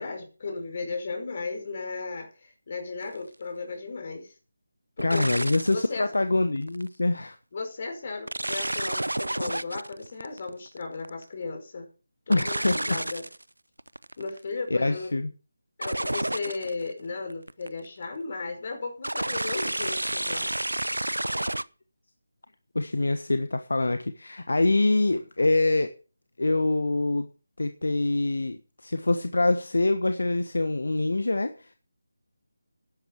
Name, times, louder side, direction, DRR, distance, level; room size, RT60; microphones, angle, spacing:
voice 1, 0.0-4.3 5.0-5.5 5.7-6.1 7.5-11.9 12.3-13.2 14.2-15.2 15.8-20.5, left 4 dB, 40° left, 5 dB, 5.3 m, -35 dB
sound 1, 3.0-3.2 5.0-5.9 6.6-6.9 8.3-11.2 12.3-13.4 13.8-14.4 15.8-16.9 17.3-17.8 19.0-21.6, right 1 dB, 85° right, 0.7 m, -30 dB
voice 2, 5.0-7.4 12.3-13.0 14.7-15.3 22.7-25.9 26.4-27.3 27.6-31.7, left 2 dB, 70° left, 9 dB, 1.3 m, -25 dB
11.5 x 11.0 x 6.0 m, 0.35 s
figure-of-eight pair, 160°, 0 cm